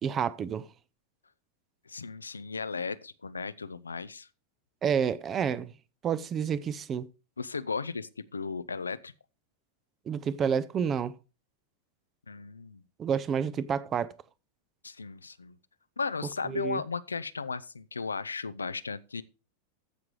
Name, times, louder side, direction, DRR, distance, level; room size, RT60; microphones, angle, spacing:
voice 1, 0.0-0.7 4.8-5.7 6.0-7.1 10.1-11.2 13.0-14.1 16.5-16.8, right 7 dB, 25° right, 0.6 m, -29 dB
voice 2, 1.9-4.3 7.4-9.1 12.3-12.8 14.8-15.5 16.0-19.2, left 4 dB, 75° left, 0.5 m, -35 dB
15.0 x 6.0 x 3.1 m
figure-of-eight pair, 90°, 0 cm